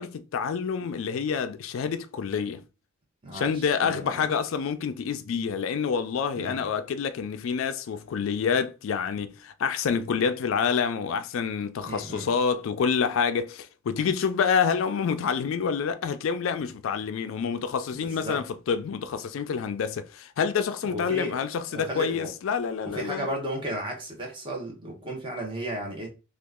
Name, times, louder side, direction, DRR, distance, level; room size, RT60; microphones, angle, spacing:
voice 1, 0.0-2.6 3.3-23.3, left 6 dB, 75° left, 0.3 m, -27 dB
voice 2, 3.2-4.3 6.4-6.7 11.8-12.3 18.0-18.4 20.8-21.4 21.7-22.3 22.8-26.1, right 1 dB, 25° right, 1.0 m, -34 dB
2.9 x 2.4 x 3.5 m
head